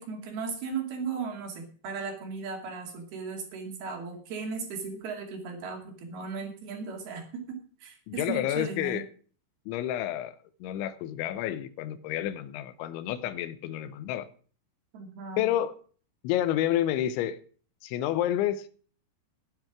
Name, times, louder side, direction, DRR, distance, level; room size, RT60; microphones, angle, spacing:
voice 1, 0.0-9.0 14.9-15.5, right 5 dB, 60° right, 4.3 m, -36 dB
voice 2, 8.1-9.1 9.7-10.4 10.6-14.3 15.4-15.7 16.2-17.4 17.8-18.7, left 12 dB, 90° left, 3.2 m, -29 dB
12.0 x 9.9 x 6.0 m
omnidirectional pair, 5.2 m